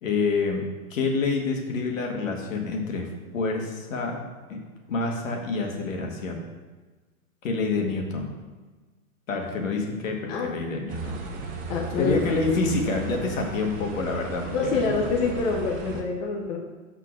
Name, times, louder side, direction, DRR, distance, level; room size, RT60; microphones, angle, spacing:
voice 1, 0.0-0.7 0.9-4.2 4.5-4.6 4.9-6.4 7.4-8.3 9.3-11.2 12.0-14.9, left 3 dB, 60° left, 2 dB, 1.9 m, -27 dB
sound 1, 10.9-16.0, right 3 dB, 20° right, 1.0 m, -35 dB
voice 2, 11.7-12.2 14.5-16.6, left 4 dB, 15° left, 0 dB, 0.5 m, -26 dB
6.4 x 4.5 x 6.2 m, 1.3 s
hypercardioid pair, 135°, 44 cm